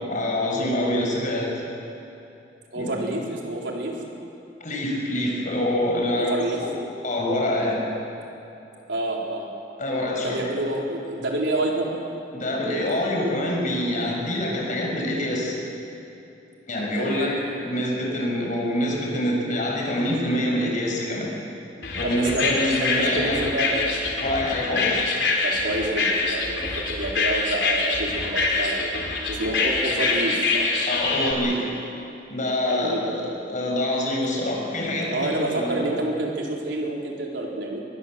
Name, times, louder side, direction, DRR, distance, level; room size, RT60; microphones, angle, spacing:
voice 1, 0.0-1.6 2.7-3.0 4.6-6.7 7.0-7.8 9.8-10.5 12.3-15.5 16.7-21.3 21.9-23.4 24.2-25.1 30.9-31.7 32.3-35.9, left 1 dB, 45° left, -1 dB, 6.1 m, -26 dB
voice 2, 2.7-4.0 6.1-6.6 8.9-9.5 10.2-12.0 17.0-17.3 22.0-23.9 24.7-24.9 25.4-28.9 29.3-30.7 32.7-33.0 35.1-37.8, right 2 dB, 80° right, -1 dB, 4.2 m, -28 dB
sound 1, 21.8-31.3, left 3 dB, 75° left, 3.6 m, -25 dB
24.0 x 21.0 x 7.7 m, 2.8 s
head